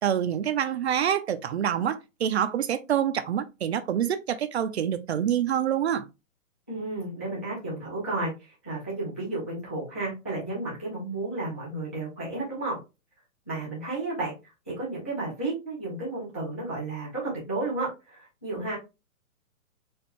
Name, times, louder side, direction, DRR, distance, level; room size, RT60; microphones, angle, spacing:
voice 1, 0.0-6.1, right 9 dB, 55° right, 0.4 m, -26 dB
voice 2, 6.7-12.8 13.5-14.3 14.7-18.8, right 2 dB, 10° left, 0.4 m, -32 dB
4.3 x 2.4 x 3.0 m
hypercardioid pair, 160°, 41 cm